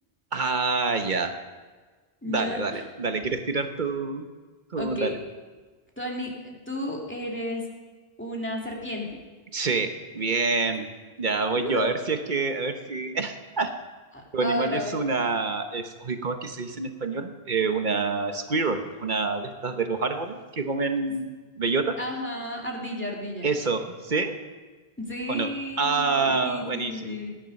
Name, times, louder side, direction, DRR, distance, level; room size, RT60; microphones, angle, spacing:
voice 1, 0.3-1.4 2.2-4.2 4.7-5.1 9.5-10.9 11.2-13.7 14.3-22.0 23.4-24.4 25.3-25.5 25.8-27.2, right 4 dB, 50° right, 7 dB, 1.2 m, -27 dB
voice 2, 2.2-2.8 4.8-5.1 6.0-7.7 8.2-9.2 11.5-11.9 14.1-15.0 22.0-23.5 25.0-27.3, left 1 dB, 10° left, -2 dB, 2.4 m, -33 dB
18.5 x 10.5 x 5.3 m, 1.4 s
omnidirectional pair, 1.1 m